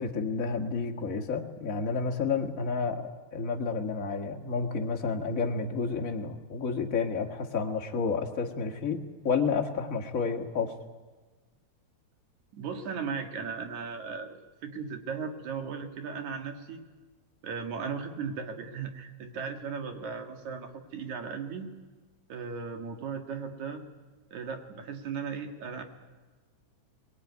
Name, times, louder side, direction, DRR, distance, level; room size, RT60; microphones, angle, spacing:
voice 1, 0.0-10.7, left 5 dB, 30° left, 2 dB, 1.7 m, -30 dB
voice 2, 12.5-16.8 17.4-21.7 22.3-23.8 24.3-25.8, right 5 dB, 65° right, 5 dB, 3.1 m, -37 dB
23.0 x 20.5 x 9.6 m, 1.3 s
omnidirectional pair, 3.8 m